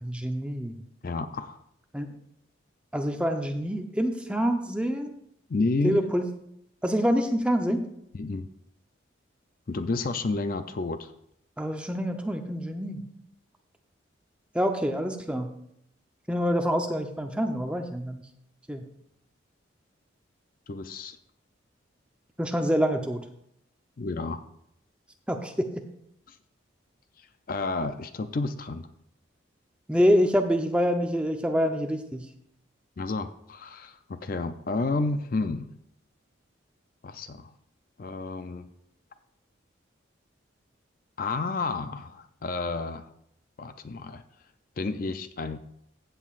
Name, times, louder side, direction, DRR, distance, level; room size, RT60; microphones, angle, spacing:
voice 1, 0.0-0.8 1.9-2.1 2.9-5.1 5.8-6.3 6.8-7.8 11.6-13.0 14.5-15.5 16.3-18.2 18.7-18.8 22.4-23.2 25.3-25.9 29.9-32.2, equal, 5° right, 4 dB, 0.7 m, -26 dB
voice 2, 1.0-1.6 5.5-6.0 8.1-8.5 9.7-11.1 20.7-21.2 24.0-24.4 26.3-26.4 27.2-28.9 33.0-35.7 37.0-37.5 38.0-38.6 41.2-43.1 43.6-44.2 44.8-45.6, left 3 dB, 45° left, 10 dB, 0.4 m, -31 dB
15.5 x 7.7 x 2.5 m, 0.75 s
head